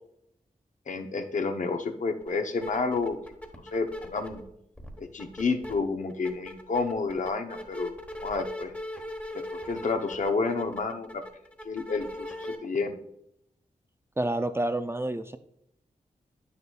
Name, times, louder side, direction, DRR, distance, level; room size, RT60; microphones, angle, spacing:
voice 1, 0.9-3.2 3.7-4.4 5.0-7.9 8.2-8.7 9.3-11.2 11.6-13.0, left 4 dB, 60° left, 6 dB, 0.8 m, -30 dB
sound 1, 2.2-2.3 2.6-4.4 4.8-5.7 6.1-12.6, left 1 dB, 10° left, 1.1 m, -39 dB
voice 2, 14.2-15.4, right 1 dB, 15° right, 9 dB, 0.4 m, -28 dB
9.0 x 6.6 x 2.3 m, 0.75 s
wide cardioid pair, 80°, 14 cm